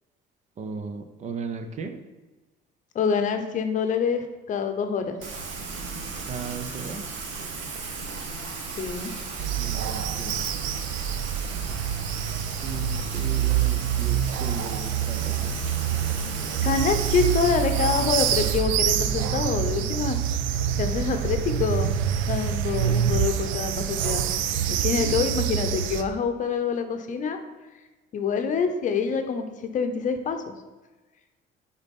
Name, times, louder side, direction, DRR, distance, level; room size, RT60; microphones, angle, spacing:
voice 1, 0.6-2.0 6.3-7.2 9.5-10.7 12.6-15.7 25.0-25.2, right 5 dB, 35° right, 8 dB, 0.7 m, -36 dB
voice 2, 2.9-5.2 8.8-9.1 16.6-20.2 20.8-21.9 22.3-24.2 24.8-27.4 28.1-29.5 29.7-30.4, left 5 dB, 40° left, 7 dB, 0.8 m, -26 dB
Rain, 5.2-18.6, right 4 dB, 70° right, 1.4 m, -36 dB
sound 1, 9.4-26.0, right 9 dB, 90° right, 0.6 m, -26 dB
9.7 x 4.1 x 5.3 m, 1.2 s
cardioid pair, 155°, 19 cm